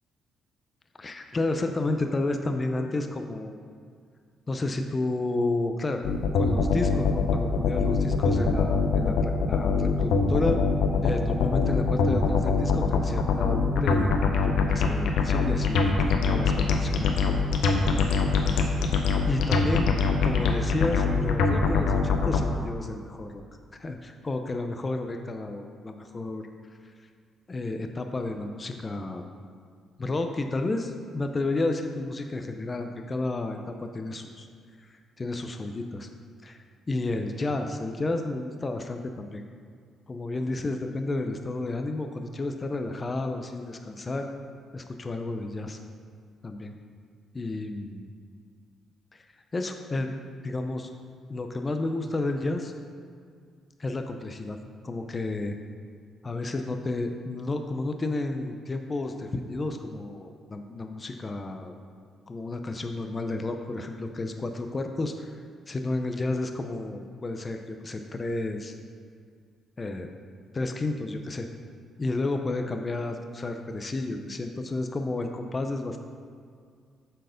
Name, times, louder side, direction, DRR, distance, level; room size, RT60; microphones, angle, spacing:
voice 1, 1.0-3.6 4.5-6.0 6.3-10.6 11.0-17.4 17.9-18.2 19.0-19.9 20.2-23.4 23.8-26.4 27.5-29.2 30.0-34.5 35.2-36.1 36.4-39.4 40.1-44.3 44.7-45.8 46.4-46.8 47.3-48.0 49.1-49.2 49.5-50.1 50.4-50.9 51.3-52.7 53.8-54.6 54.8-55.6 56.2-61.7 62.3-65.3 65.7-68.7 69.8-70.1 70.5-71.5 72.0-76.0, left 2 dB, 30° left, 5 dB, 0.6 m, -31 dB
sound 1, 6.0-22.4, left 5 dB, 80° left, 0.7 m, -23 dB
7.7 x 4.6 x 5.1 m, 2.2 s
cardioid pair, 90°, 0 cm